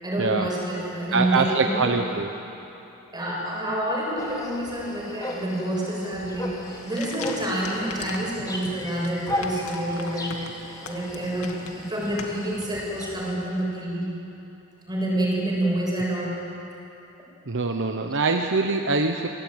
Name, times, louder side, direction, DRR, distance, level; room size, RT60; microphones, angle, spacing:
voice 1, 0.0-1.9 3.1-14.1 14.9-16.3, right 1 dB, 20° right, -3 dB, 7.4 m, -28 dB
voice 2, 1.1-2.3 17.5-19.3, right 3 dB, 55° right, 5 dB, 1.1 m, -23 dB
sound 1, 4.2-13.3, left 1 dB, 20° left, 2.9 m, -36 dB
sound 2, 6.6-13.2, left 4 dB, 85° left, 2.3 m, -41 dB
27.5 x 18.0 x 9.5 m, 2.9 s
head